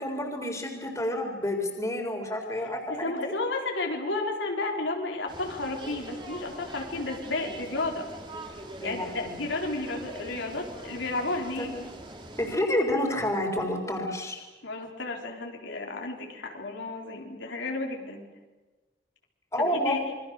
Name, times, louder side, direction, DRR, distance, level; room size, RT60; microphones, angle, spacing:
voice 1, 0.0-3.2 8.8-9.4 11.6-11.8 12.4-14.4 19.5-20.0, left 1 dB, 15° left, 2 dB, 3.9 m, -29 dB
voice 2, 3.0-8.1 8.8-11.7 14.6-18.2 19.6-20.1, left 2 dB, 85° left, 1 dB, 4.3 m, -32 dB
sound 1, 5.3-12.6, right 1 dB, 25° right, 2.8 m, -43 dB
27.0 x 23.5 x 6.6 m, 1.2 s
head